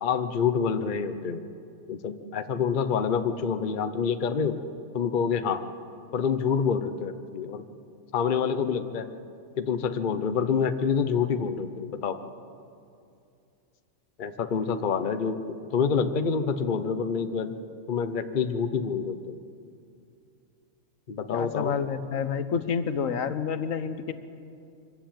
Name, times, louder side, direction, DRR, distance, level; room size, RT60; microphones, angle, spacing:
voice 1, 0.0-1.4 1.9-4.6 4.9-5.6 6.1-7.6 8.1-9.1 9.6-12.2 14.2-15.4 15.7-17.5 17.9-19.3 21.1-21.8, left 6 dB, 40° left, 9 dB, 0.9 m, -27 dB
voice 2, 21.3-24.1, left 6 dB, 75° left, 11 dB, 1.3 m, -29 dB
24.5 x 14.5 x 9.1 m, 2.5 s
omnidirectional pair, 1.4 m